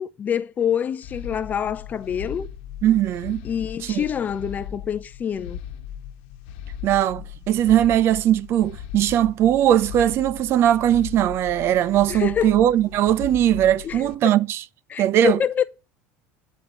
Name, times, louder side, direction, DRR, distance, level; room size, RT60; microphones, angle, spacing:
voice 1, 0.0-2.5 3.4-5.6 12.1-12.6 13.8-14.3 14.9-15.6, left 8 dB, 30° left, 0.6 m, -26 dB
sound 1, 1.0-14.1, left 9 dB, 80° left, 1.1 m, -38 dB
voice 2, 2.8-3.4 3.9-4.0 6.8-14.6 15.0-15.4, right 11 dB, 45° right, 0.7 m, -19 dB
10.0 x 5.3 x 7.7 m
cardioid pair, 135°, 6 cm